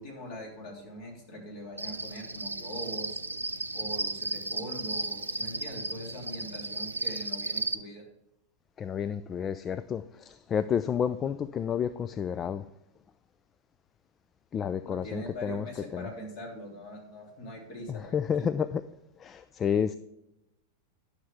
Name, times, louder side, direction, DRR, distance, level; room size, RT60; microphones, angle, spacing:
voice 1, 0.0-3.2 3.7-8.0 14.9-18.5, equal, 45° left, 3.1 m, -42 dB
Cricket, 1.8-7.7, right 3 dB, 80° right, 0.5 m, -34 dB
voice 2, 8.8-12.6 14.5-15.6 15.9-16.1 17.9-18.8 19.2-20.0, left 7 dB, 25° left, 0.3 m, -30 dB
11.0 x 6.6 x 3.5 m
figure-of-eight pair, 90°, 0 cm